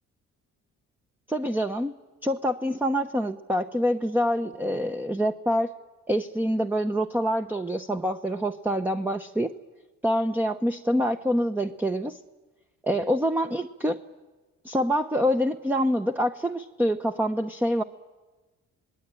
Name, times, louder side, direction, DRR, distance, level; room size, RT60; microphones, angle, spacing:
voice 1, 1.3-1.9 2.2-5.7 6.1-9.5 10.0-12.2 12.8-14.0 14.6-17.8, equal, 5° right, 7 dB, 0.9 m, -26 dB
26.0 x 19.5 x 8.9 m, 1.2 s
supercardioid pair, 75°, 31 cm